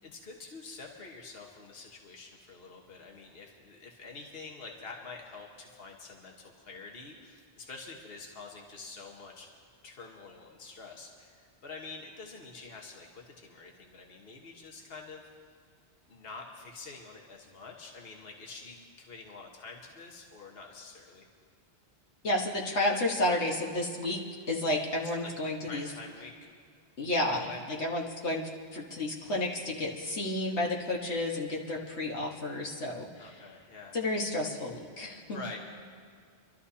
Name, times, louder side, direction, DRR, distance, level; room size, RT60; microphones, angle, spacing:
voice 1, 0.0-9.5 9.8-15.2 16.1-21.3 25.2-25.3 25.7-26.5 27.2-27.6 33.2-34.0 35.3-35.6, left 4 dB, 60° left, 0 dB, 1.5 m, -47 dB
voice 2, 22.2-24.2 24.5-25.9 27.0-33.3 33.9-35.4, left 1 dB, 80° left, -2 dB, 1.7 m, -31 dB
26.5 x 12.5 x 2.8 m, 2.1 s
omnidirectional pair, 1.1 m